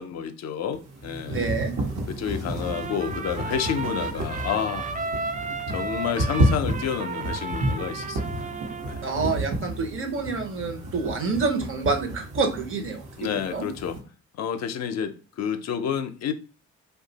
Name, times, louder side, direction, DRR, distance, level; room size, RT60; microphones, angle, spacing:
voice 1, 0.0-1.5 2.1-5.0 5.7-8.5 8.9-9.0 13.2-14.0 14.4-16.3, left 8 dB, 60° left, 0.5 m, -30 dB
sound 1, 0.7-14.0, right 1 dB, 70° right, 1.0 m, -31 dB
voice 2, 1.3-1.7 9.0-13.7, right 4 dB, 45° right, 0.8 m, -28 dB
Trumpet, 2.6-9.2, right 4 dB, 25° right, 0.4 m, -34 dB
2.6 x 2.3 x 3.9 m
cardioid pair, 90°, 30 cm